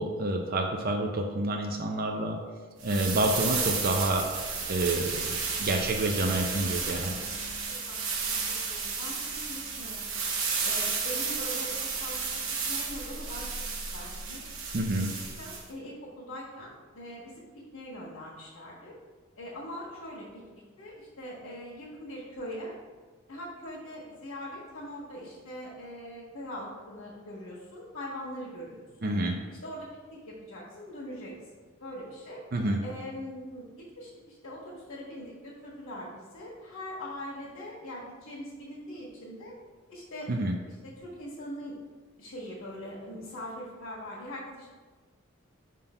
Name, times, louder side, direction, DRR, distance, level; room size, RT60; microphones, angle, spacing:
voice 1, 0.0-2.4 2.8-4.3 4.7-7.2 14.7-15.1 29.0-29.4 32.5-32.8 40.3-40.5, right 2 dB, 45° right, 2 dB, 0.5 m, -28 dB
sound 1, 2.8-15.6, right 5 dB, 70° right, 0.9 m, -32 dB
voice 2, 8.7-10.1 10.6-13.5 13.9-14.4 15.4-18.9 19.4-20.4 20.8-22.7 23.3-29.1 29.5-31.4 31.8-32.4 32.8-39.5 39.9-41.8 42.2-44.7, equal, 90° left, -8 dB, 1.6 m, -42 dB
5.5 x 3.7 x 5.6 m, 1.4 s
head